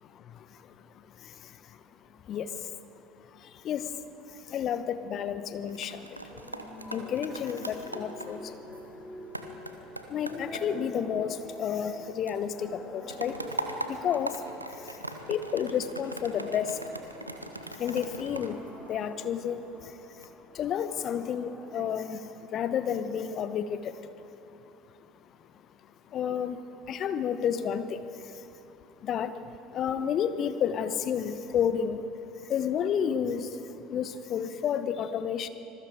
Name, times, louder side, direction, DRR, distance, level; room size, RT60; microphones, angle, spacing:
voice 1, 0.0-1.8 2.2-2.8 3.3-6.2 6.9-8.6 10.1-13.4 13.9-14.4 14.7-16.9 17.7-24.3 26.1-28.5 29.0-32.1 32.4-35.5, left 8 dB, 40° left, 12 dB, 1.1 m, -32 dB
sound 1, 5.5-12.0 12.3-19.5 20.0-20.3, right 2 dB, 85° right, 1.0 m, -41 dB
sound 2, 6.3-22.7, left 1 dB, 15° left, 2.6 m, -46 dB
26.0 x 21.5 x 5.1 m, 2.9 s
figure-of-eight pair, 65°, 0 cm